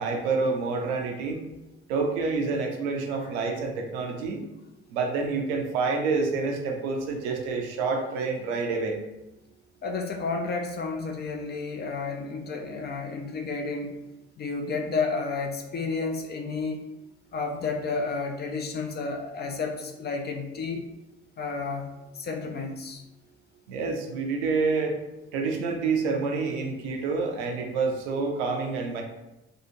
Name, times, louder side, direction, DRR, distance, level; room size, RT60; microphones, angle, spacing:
voice 1, 0.0-1.4 1.9-4.4 4.9-9.0 23.7-25.0 25.3-29.0, right 4 dB, 70° right, 2 dB, 0.5 m, -28 dB
voice 2, 9.8-13.9 14.4-16.8 17.3-20.9 21.4-21.9 22.1-23.0, left 4 dB, 30° left, 3 dB, 0.4 m, -31 dB
2.7 x 2.3 x 2.7 m, 0.96 s
figure-of-eight pair, 45°, 35 cm